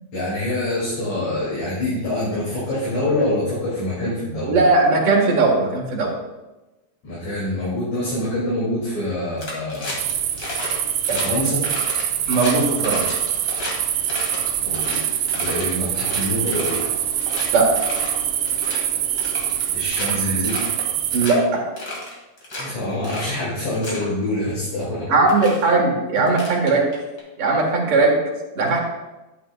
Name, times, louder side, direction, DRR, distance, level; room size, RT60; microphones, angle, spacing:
voice 1, 0.1-4.6 7.0-10.0 11.1-11.6 14.6-16.9 19.7-20.6 22.6-25.1, left 1 dB, 70° left, -10 dB, 4.3 m, -25 dB
voice 2, 4.5-6.1 12.3-13.2 17.5-17.7 21.1-21.6 25.1-26.9 27.4-28.2 28.6-28.8, right 3 dB, 55° right, -1 dB, 2.6 m, -18 dB
sound 1, 9.4-10.1 10.4-10.7 11.0-11.2 11.6-13.7 14.0-15.6 16.0-16.9 17.2-17.5 17.8-18.1 18.4-18.8 19.2-20.1 20.4-20.8 21.1-21.4 21.8-22.6 23.0-23.3 23.7-24.0 24.9-25.0 25.3-25.6 26.3-27.2, left 1 dB, 35° left, 2.7 m, -32 dB
sound 2, 10.0-21.3, right 10 dB, 90° right, 1.3 m, -24 dB
12.0 x 9.4 x 2.5 m, 1.1 s
omnidirectional pair, 3.4 m